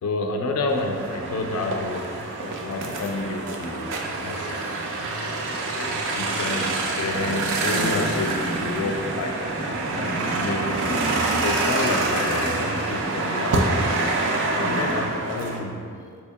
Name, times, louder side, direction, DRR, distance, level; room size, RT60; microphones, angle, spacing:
voice 1, 0.0-2.2 2.5-4.7 5.7-8.3 8.6-9.4 10.0-10.6 11.4-13.7 14.5-15.8, left 3 dB, 75° left, 3 dB, 0.3 m, -29 dB
sound 1, 0.7-15.6, right 2 dB, 55° right, 0.4 m, -26 dB
voice 2, 7.7-8.0 8.4-8.9 10.0-11.1 14.5-16.2, equal, 15° left, -4 dB, 0.5 m, -37 dB
4.1 x 2.7 x 2.2 m, 2.1 s
head